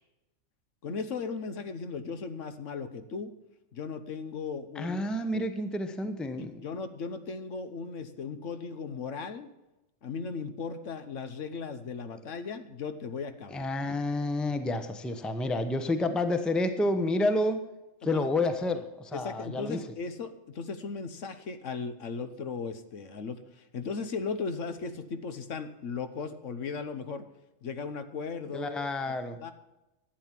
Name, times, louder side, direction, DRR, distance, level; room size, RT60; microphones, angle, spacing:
voice 1, 0.8-3.3 3.7-5.5 6.4-9.5 10.0-13.6 18.0-18.3 19.1-27.3 27.6-28.9 29.4-29.5, left 5 dB, 70° left, 9 dB, 1.3 m, -37 dB
voice 2, 4.8-6.5 13.5-17.6 18.0-19.8 28.5-29.4, left 2 dB, ahead, 9 dB, 0.7 m, -29 dB
11.5 x 9.0 x 7.6 m, 0.95 s
omnidirectional pair, 1.4 m